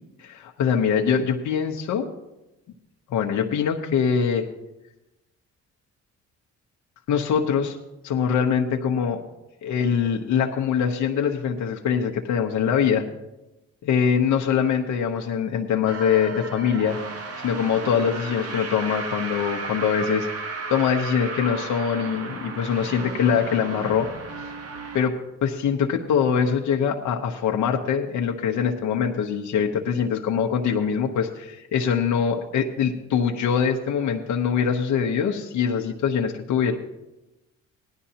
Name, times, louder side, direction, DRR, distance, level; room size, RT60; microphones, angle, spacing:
voice 1, 0.2-2.1 3.1-4.4 7.1-7.8 8.0-9.2 9.6-13.0 13.8-17.0 17.4-24.1 24.9-25.1 25.4-36.8, left 7 dB, 75° left, 2 dB, 1.0 m, -23 dB
sound 1, 15.9-25.1, right 3 dB, 50° right, 1.2 m, -34 dB
17.0 x 11.5 x 2.8 m, 0.97 s
cardioid pair, 90°, 30 cm